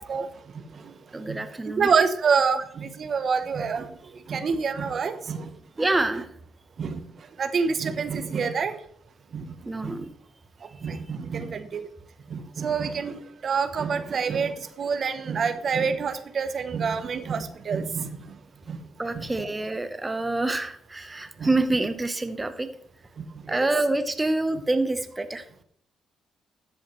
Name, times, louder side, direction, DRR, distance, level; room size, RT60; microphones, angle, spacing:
voice 1, 0.5-0.9 1.3-3.9 4.3-5.5 5.8-5.9 6.8-7.0 7.4-8.8 9.3-9.5 9.8-10.0 10.6-11.8 12.3-18.3 18.7-18.8 19.1-19.5 21.4-21.5 23.2-23.7, right 5 dB, 50° right, 10 dB, 0.8 m, -27 dB
voice 2, 1.1-1.9 5.8-6.3 9.7-10.1 19.0-22.7 23.5-25.4, right 2 dB, 15° right, 9 dB, 0.8 m, -26 dB
13.5 x 8.1 x 3.1 m, 0.62 s
cardioid pair, 90°, 0 cm